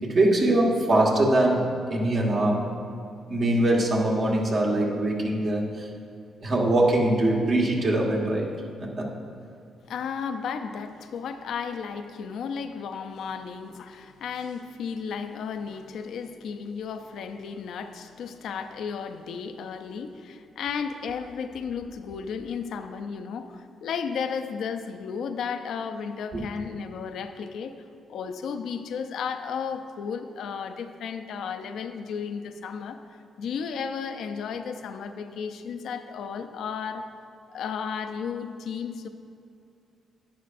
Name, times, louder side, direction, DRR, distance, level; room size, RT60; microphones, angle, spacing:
voice 1, 0.0-2.7 3.3-5.9 6.4-8.5 8.8-9.1 26.3-26.4, right 1 dB, 50° right, -2 dB, 1.5 m, -23 dB
voice 2, 9.8-27.7 28.1-37.1 37.5-39.1, left 6 dB, 75° left, 8 dB, 0.5 m, -34 dB
11.0 x 9.2 x 2.6 m, 2.5 s
cardioid pair, 80°, 0 cm